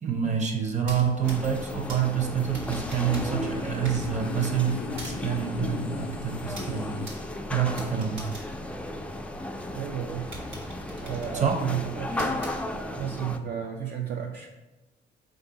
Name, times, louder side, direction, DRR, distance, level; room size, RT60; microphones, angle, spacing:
voice 1, 0.0-7.0 7.5-8.3 11.3-11.6, right 7 dB, 35° right, 2 dB, 0.8 m, -27 dB
sound 1, 0.7-9.5 9.9-10.0 10.3-13.1, right 1 dB, 75° right, 1.2 m, -45 dB
sound 2, 1.2-13.4, left 1 dB, 5° left, 0.3 m, -35 dB
sound 3, 2.4-7.3, left 5 dB, 80° left, 0.4 m, -39 dB
voice 2, 9.7-10.3 11.0-12.4 13.0-14.5, right 9 dB, 55° right, 1 dB, 0.4 m, -33 dB
4.4 x 2.6 x 4.0 m, 1.1 s
cardioid pair, 90°, 20 cm